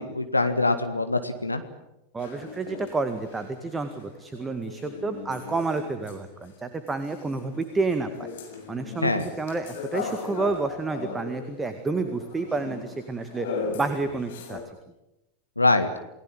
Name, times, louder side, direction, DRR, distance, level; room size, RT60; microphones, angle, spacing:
voice 1, 0.0-1.6 9.0-9.3 15.6-15.9, left 2 dB, 85° left, 7 dB, 1.7 m, -23 dB
voice 2, 2.1-8.3 8.7-13.5 13.7-14.6, right 3 dB, 15° right, 8 dB, 2.0 m, -30 dB
sound 1, 2.2-6.6 6.8-14.6, left 5 dB, 55° left, 7.2 m, -38 dB
29.0 x 19.5 x 8.7 m, 0.90 s
figure-of-eight pair, 90°, 0 cm